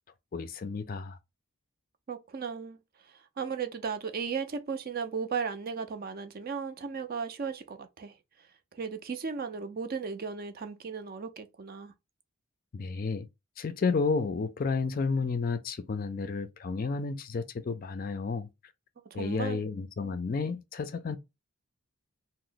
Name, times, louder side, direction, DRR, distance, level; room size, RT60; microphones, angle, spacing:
voice 1, 0.3-1.2 12.7-13.3 13.6-18.5 19.1-21.2, left 4 dB, 40° left, 0.3 m, -31 dB
voice 2, 2.1-2.8 3.1-8.1 8.7-11.9 19.1-19.6, right 5 dB, 40° right, 0.4 m, -36 dB
2.9 x 2.0 x 3.8 m
head